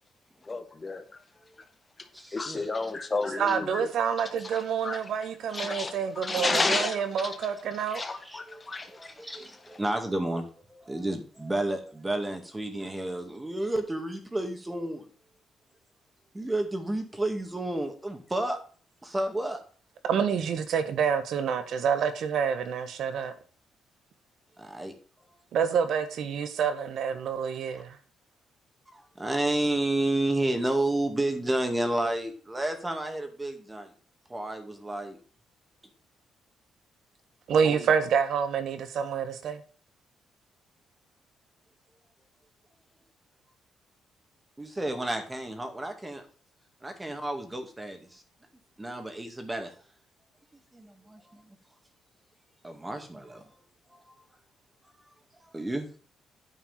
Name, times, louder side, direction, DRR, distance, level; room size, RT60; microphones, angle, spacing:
voice 1, 0.5-1.0 2.3-3.9 4.4-5.0 5.5-7.3 7.9-9.6, left 3 dB, 25° left, 1.7 m, -32 dB
voice 2, 2.1-2.7 3.3-3.4 8.2-15.1 16.3-18.6 19.0-19.6 24.6-24.9 28.9-33.9 34.3-35.2 37.6-37.9 44.6-46.2 46.8-48.2 48.8-49.7 50.7-51.4 52.6-53.5 55.5-55.9, right 1 dB, 15° right, 2.1 m, -31 dB
voice 3, 3.4-8.0 20.0-23.3 25.5-28.0 37.5-39.6, right 7 dB, 70° right, 1.4 m, -27 dB
9.6 x 4.7 x 7.3 m
cardioid pair, 90°, 0 cm